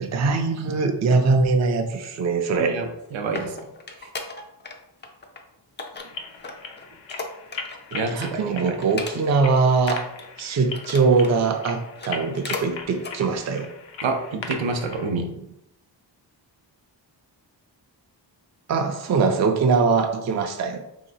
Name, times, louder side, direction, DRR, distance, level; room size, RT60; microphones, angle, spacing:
voice 1, 0.1-2.8 8.1-10.1 10.4-13.7 18.7-20.8, right 4 dB, 40° right, 5 dB, 0.4 m, -22 dB
voice 2, 2.5-3.5 7.9-8.8 14.0-15.3, right 3 dB, 90° right, 4 dB, 0.7 m, -28 dB
sound 1, 2.8-4.8 5.0-5.4 5.8-7.9 8.3-8.4 8.8-9.5 9.8-11.4 11.9-12.7 13.0-13.2 13.7-13.8, left 3 dB, 25° left, 0.3 m, -36 dB
sound 2, 6.0-15.1, left 5 dB, 80° left, 0.6 m, -39 dB
3.2 x 2.8 x 4.0 m, 0.84 s
wide cardioid pair, 150°, 45 cm